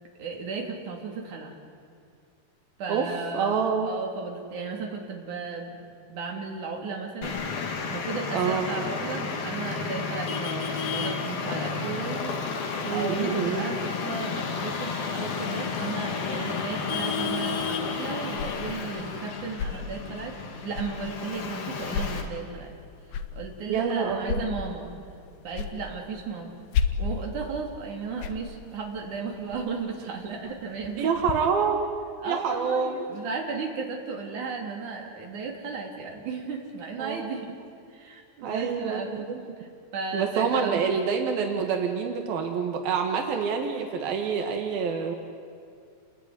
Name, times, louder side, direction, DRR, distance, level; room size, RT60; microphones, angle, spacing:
voice 1, 0.2-1.5 2.8-7.4 7.9-11.9 12.9-20.4 20.6-22.7 23.4-24.9 25.4-26.5 27.0-31.1 32.2-37.6 37.9-39.2 39.9-40.9, right 4 dB, 60° right, 0 dB, 4.8 m, -35 dB
voice 2, 3.3-3.9 8.3-8.7 11.8-12.4 12.9-13.6 23.7-24.5 31.0-33.1 37.0-37.3 38.4-39.4 40.1-45.2, right 6 dB, 85° right, 3 dB, 3.6 m, -27 dB
Traffic noise roadway noise, 7.2-22.2, left 5 dB, 85° left, 4.4 m, -32 dB
sound 1, 17.3-31.3, left 6 dB, 65° left, 2.6 m, -36 dB
29.0 x 20.5 x 9.8 m, 2.4 s
omnidirectional pair, 4.1 m